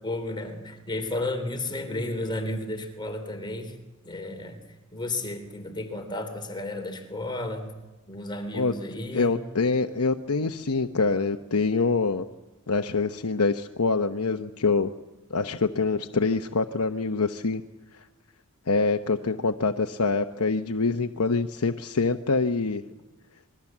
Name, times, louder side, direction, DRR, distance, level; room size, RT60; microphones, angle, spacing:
voice 1, 0.0-3.8 4.0-4.6 4.9-7.8 8.1-9.3, left 1 dB, 20° left, 5 dB, 3.3 m, -33 dB
voice 2, 9.1-12.3 12.7-14.9 15.3-17.6 18.7-22.8, left 4 dB, 75° left, 6 dB, 0.9 m, -25 dB
27.0 x 22.0 x 7.3 m, 1.1 s
head